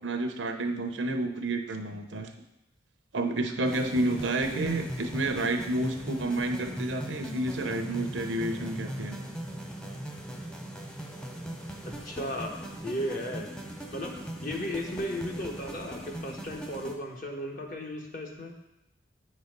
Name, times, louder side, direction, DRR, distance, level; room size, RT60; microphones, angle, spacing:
voice 1, 0.0-2.3 3.1-9.2, right 2 dB, 80° right, 6 dB, 0.7 m, -30 dB
sound 1, 3.6-16.9, equal, 5° left, 0.6 m, -39 dB
voice 2, 11.9-12.6 12.8-13.5 13.9-18.6, equal, 45° left, 1 dB, 1.1 m, -35 dB
8.6 x 4.1 x 5.2 m, 0.88 s
head